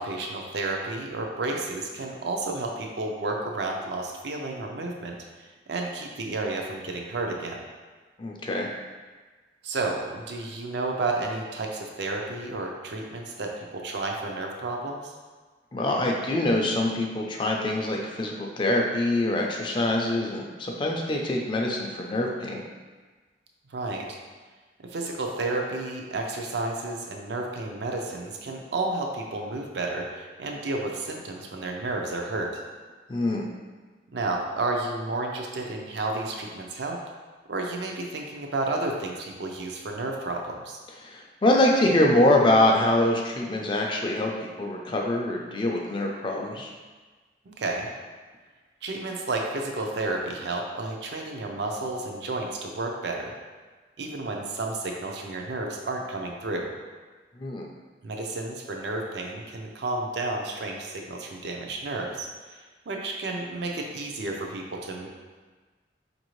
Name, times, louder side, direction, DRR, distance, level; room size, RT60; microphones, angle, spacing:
voice 1, 0.0-5.2 5.7-7.6 9.6-15.1 23.7-24.2 24.8-32.5 34.1-37.0 37.5-40.8 47.5-47.9 48.8-53.3 54.0-56.7 58.0-65.1, right 2 dB, 70° right, 1 dB, 0.5 m, -31 dB
voice 2, 8.2-8.7 15.7-22.6 33.1-33.5 41.0-46.7 57.4-57.7, left 1 dB, 25° left, 0 dB, 0.4 m, -24 dB
4.8 x 2.6 x 3.0 m, 1.3 s
head